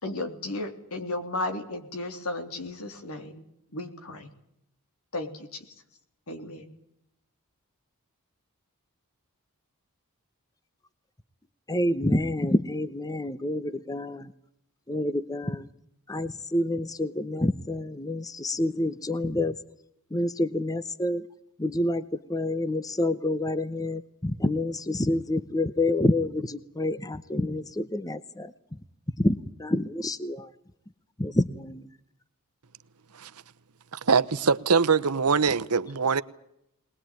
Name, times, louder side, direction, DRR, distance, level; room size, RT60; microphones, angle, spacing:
voice 1, 0.0-3.4 3.7-4.3 5.1-5.6 6.3-6.7, left 2 dB, 70° left, 3.4 m, -34 dB
voice 2, 11.7-14.3 14.9-15.7 16.1-19.6 20.1-21.3 21.6-28.8 29.2-30.5 31.2-31.9, left 1 dB, 15° left, 0.8 m, -28 dB
voice 3, 33.9-36.2, right 5 dB, 85° right, 1.0 m, -23 dB
21.5 x 20.5 x 9.1 m
head